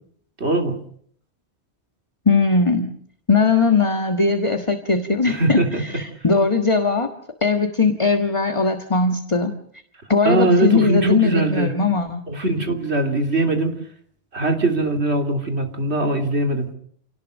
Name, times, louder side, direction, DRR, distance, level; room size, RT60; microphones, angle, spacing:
voice 1, 0.4-0.7 5.3-5.8 10.2-11.7 12.3-13.7 14.3-16.7, right 2 dB, 70° right, 3 dB, 3.4 m, -21 dB
voice 2, 2.2-2.9 3.3-7.1 7.4-9.5 10.1-12.2, left 4 dB, 30° left, 5 dB, 1.6 m, -19 dB
28.5 x 19.0 x 6.4 m, 0.63 s
omnidirectional pair, 1.1 m